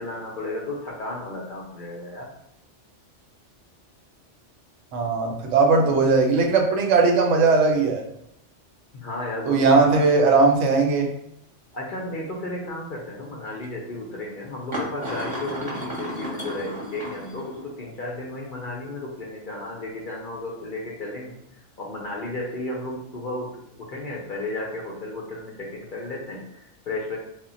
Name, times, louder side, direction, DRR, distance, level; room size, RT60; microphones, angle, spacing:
voice 1, 0.0-2.3 8.9-10.0 11.7-21.4 21.8-27.2, left 2 dB, 60° left, -3 dB, 0.5 m, -33 dB
voice 2, 4.9-8.0 9.5-11.1, right 4 dB, 80° right, 2 dB, 0.9 m, -19 dB
sound 1, 12.2-12.3 13.6-13.7 14.7-17.8, equal, 35° right, 0.8 m, -33 dB
2.1 x 2.1 x 3.7 m, 0.79 s
omnidirectional pair, 1.2 m